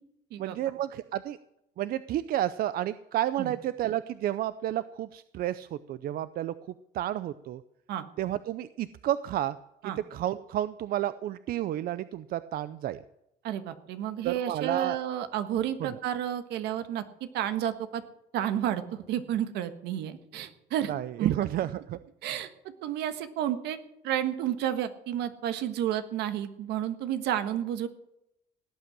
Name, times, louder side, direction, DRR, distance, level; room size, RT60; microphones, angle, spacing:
voice 1, 0.4-1.4 1.8-6.5 6.9-7.6 8.2-9.6 10.1-13.0 14.2-15.0 15.8-15.9 20.9-22.0, right 12 dB, 65° right, 14 dB, 0.6 m, -31 dB
voice 2, 13.4-18.0 18.3-20.9 21.2-21.3 22.2-22.5 22.8-23.8 24.0-27.9, right 10 dB, 85° right, 10 dB, 1.4 m, -31 dB
17.5 x 8.6 x 7.4 m, 0.84 s
cardioid pair, 110°, 17 cm